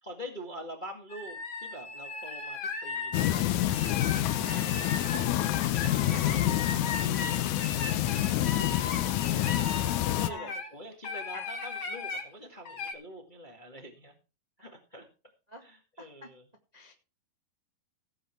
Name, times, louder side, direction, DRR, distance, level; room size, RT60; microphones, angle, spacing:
voice 1, 0.0-4.7 5.0-5.6 5.9-6.5 6.8-9.2 10.2-14.1 14.6-15.0 15.6-16.5, equal, 20° left, 3 dB, 1.2 m, -46 dB
sound 1, 1.1-10.7 11.0-12.2 12.7-12.9, left 4 dB, 40° left, 2.5 m, -37 dB
sound 2, 3.1-10.3, left 14 dB, 75° left, 1.8 m, -28 dB
voice 2, 4.4-4.8 6.1-6.4 10.3-10.6 11.3-11.5 15.5-15.6 16.0-16.3 16.7-16.9, left 1 dB, 25° right, 2 dB, 0.8 m, -45 dB
16.5 x 8.0 x 4.5 m, 0.32 s
omnidirectional pair, 4.3 m